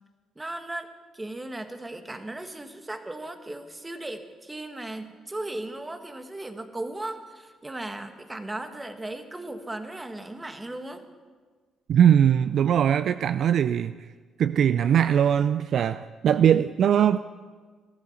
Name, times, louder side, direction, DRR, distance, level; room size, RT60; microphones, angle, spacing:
voice 1, 0.3-11.0, right 2 dB, 20° right, 7 dB, 1.8 m, -37 dB
voice 2, 11.9-13.9 14.4-17.2, right 9 dB, 65° right, 13 dB, 0.4 m, -21 dB
20.0 x 13.5 x 4.4 m, 1.4 s
hypercardioid pair, 55°, 0 cm